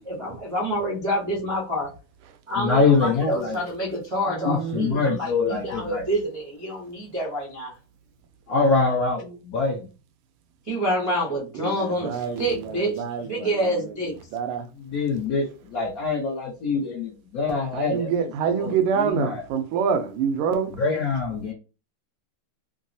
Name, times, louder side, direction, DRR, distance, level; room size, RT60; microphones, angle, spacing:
voice 1, 0.0-1.9 2.5-7.7 10.7-14.1, equal, 60° right, 0.3 m, -27 dB
voice 2, 2.5-3.6 4.4-6.1 8.5-9.9 14.8-18.3 18.6-19.4 20.6-21.5, left 4 dB, 65° left, 0.9 m, -24 dB
voice 3, 4.3-5.0 11.5-13.8 14.3-14.7 17.7-20.7, right 6 dB, 80° right, 1.4 m, -26 dB
3.8 x 2.0 x 2.6 m
omnidirectional pair, 2.4 m